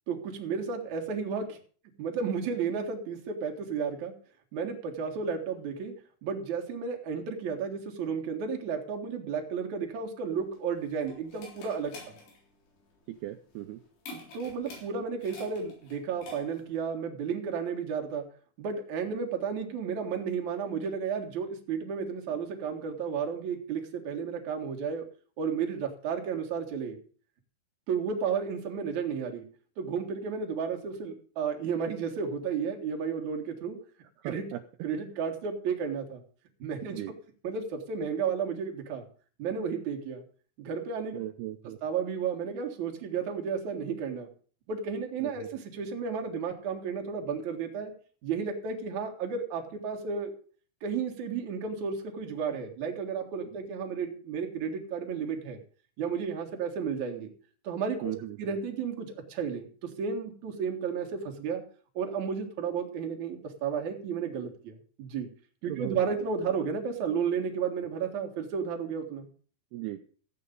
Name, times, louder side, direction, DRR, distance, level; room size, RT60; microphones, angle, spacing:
voice 1, 0.1-1.6 2.0-4.1 4.5-5.9 6.2-12.1 14.1-18.3 18.6-25.0 25.4-27.0 27.9-29.5 29.8-33.8 34.2-34.5 34.8-36.2 36.6-37.0 37.4-39.0 39.4-40.2 40.6-41.2 41.8-44.3 44.7-47.9 48.2-50.3 50.8-55.6 56.0-57.3 57.6-58.1 58.4-61.6 61.9-65.3 65.6-69.3, right 6 dB, 50° right, 3 dB, 2.5 m, -33 dB
sound 1, 10.3-16.8, left 2 dB, 90° left, 6.1 m, -48 dB
voice 2, 13.1-13.8 34.2-34.6 36.9-37.1 41.1-41.8 45.2-45.5 58.0-58.4 65.7-66.0 69.7-70.0, right 14 dB, 80° right, 5 dB, 2.3 m, -37 dB
14.5 x 8.6 x 5.4 m, 0.42 s
omnidirectional pair, 5.3 m